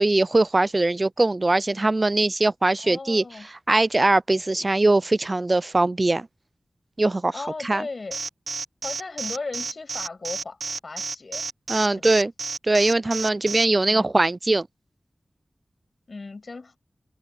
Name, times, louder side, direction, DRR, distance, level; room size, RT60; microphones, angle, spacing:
voice 1, 0.0-6.3 7.0-7.3 7.6-7.9 11.7-12.3 12.6-14.7, right 2 dB, 40° right, 0.4 m, -21 dB
voice 2, 2.8-3.5 7.3-8.2 8.8-11.4 11.9-12.2 13.9-14.1 16.1-16.8, left 3 dB, 60° left, 6.9 m, -36 dB
Alarm, 8.1-13.6, right 4 dB, 75° right, 0.8 m, -31 dB
cardioid pair, 50°, 0 cm